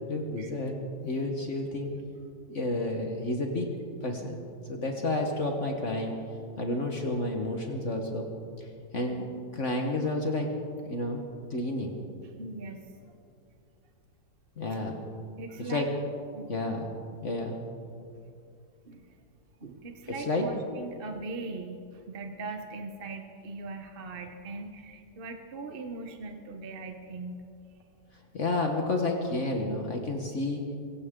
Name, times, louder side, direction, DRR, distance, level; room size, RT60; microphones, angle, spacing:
voice 1, 0.1-0.8 1.0-1.9 2.5-3.7 4.0-4.4 4.7-6.1 6.6-8.3 8.6-8.7 8.9-10.5 10.8-11.2 11.5-12.0 14.6-15.0 15.6-15.9 16.5-16.9 17.2-17.6 20.3-20.4 28.3-30.6, left 2 dB, 45° left, 2 dB, 1.5 m, -30 dB
voice 2, 12.2-12.9 14.7-14.8 15.4-15.9 16.3-16.5 18.8-19.2 19.6-27.5, right 3 dB, 45° right, 5 dB, 0.8 m, -40 dB
24.5 x 16.0 x 3.7 m, 2.5 s
omnidirectional pair, 1.8 m